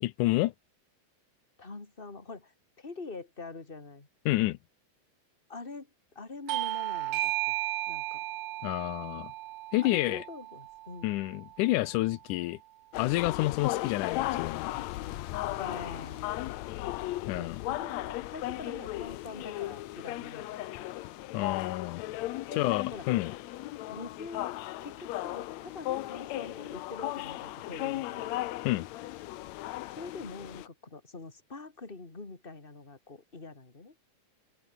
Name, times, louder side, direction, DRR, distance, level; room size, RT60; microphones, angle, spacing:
voice 1, 0.0-0.5 4.3-4.6 8.6-9.3 9.7-10.2 11.0-12.6 13.0-14.7 17.3-17.6 21.3-22.1 22.6-23.3 28.6-28.9, left 18 dB, 90° left, 2.2 m, -29 dB
voice 2, 1.6-4.1 5.5-5.9 6.1-7.5 7.9-8.2 9.8-11.2 15.6-16.3 17.1-20.9 22.5-23.1 23.9-24.5 24.8-28.4 29.9-33.9, left 3 dB, 15° left, 3.0 m, -44 dB
Bell / Doorbell, 6.5-11.6, right 17 dB, 85° right, 2.2 m, -35 dB
sound 1, 12.9-30.7, left 16 dB, 70° left, 1.8 m, -36 dB
open air
omnidirectional pair, 3.6 m